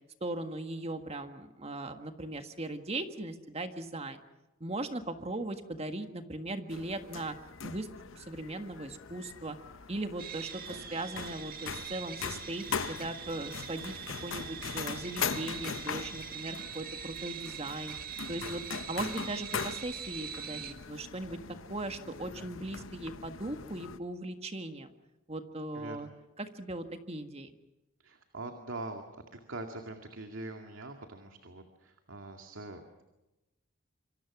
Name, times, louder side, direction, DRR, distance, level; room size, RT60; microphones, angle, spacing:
voice 1, 0.2-4.2 4.6-7.4 7.6-7.9 8.1-9.6 9.9-18.0 18.3-18.6 18.9-21.4 21.7-24.9 25.3-26.1 26.4-27.5, right 2 dB, 30° right, 7 dB, 1.7 m, -38 dB
sound 1, 6.7-24.0, left 6 dB, 75° left, 0.9 m, -41 dB
sound 2, 10.2-20.7, right 8 dB, 45° right, 1.9 m, -43 dB
voice 2, 10.5-10.9 25.7-26.2 28.0-29.0 29.3-33.0, right 2 dB, 75° right, 4 dB, 2.2 m, -43 dB
26.5 x 26.0 x 6.1 m, 1.0 s
head